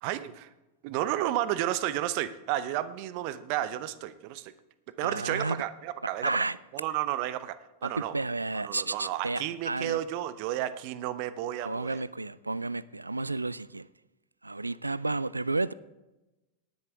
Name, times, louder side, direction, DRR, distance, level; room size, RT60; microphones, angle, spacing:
voice 1, 0.0-0.5 0.8-4.5 5.0-6.3 6.7-7.6 7.8-8.1 8.6-12.0, right 13 dB, 45° right, 0.7 m, -32 dB
voice 2, 5.0-5.6 6.2-6.6 7.8-10.0 11.6-13.9 14.4-15.7, right 2 dB, 80° right, 0.4 m, -32 dB
19.0 x 10.5 x 3.5 m
figure-of-eight pair, 90°, 0 cm